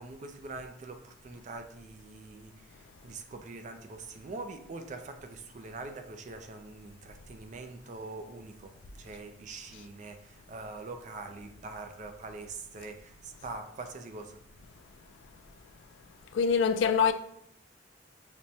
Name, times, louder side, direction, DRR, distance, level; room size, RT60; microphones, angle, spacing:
voice 1, 0.0-2.5 3.0-8.7 9.0-14.4, right 3 dB, 40° right, 0.4 m, -43 dB
voice 2, 16.3-17.1, left 6 dB, 85° left, 0.3 m, -24 dB
5.9 x 2.1 x 2.7 m
head